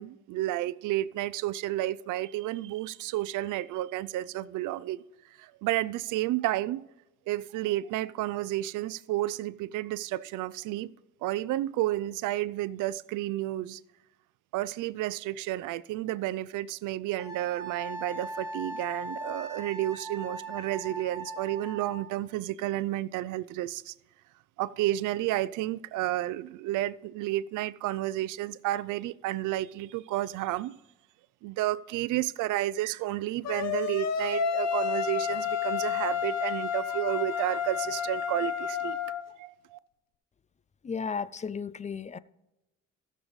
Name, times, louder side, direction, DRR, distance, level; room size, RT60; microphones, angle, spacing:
voice 1, 0.0-5.0 5.4-6.8 7.3-10.9 11.2-13.8 14.5-23.9 24.6-30.7 31.4-39.0 39.4-39.8, right 15 dB, 90° right, 0.5 m, -31 dB
Wind instrument woodwind instrument, 17.2-22.0, right 2 dB, 15° right, 2.9 m, -39 dB
sound 1, 33.4-39.2, left 7 dB, 60° left, 1.0 m, -30 dB
voice 2, 40.8-42.2, left 6 dB, 25° left, 0.4 m, -34 dB
18.0 x 6.8 x 3.1 m
cardioid pair, 90°, 30 cm